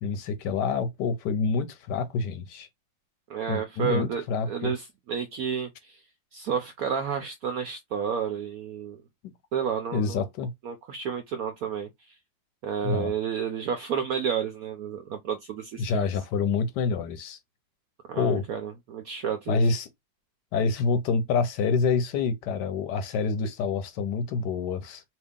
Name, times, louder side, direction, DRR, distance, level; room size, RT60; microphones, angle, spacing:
voice 1, 0.0-2.7 3.5-4.7 9.9-10.5 12.8-13.1 15.8-17.4 18.2-18.4 19.5-19.9 20.5-25.0, left 5 dB, 70° left, 1.1 m, -27 dB
voice 2, 3.3-6.0 6.3-9.0 9.5-10.3 10.6-11.9 12.6-16.1 18.1-19.7, right 7 dB, 75° right, 0.8 m, -31 dB
2.9 x 2.8 x 3.5 m
omnidirectional pair, 2.0 m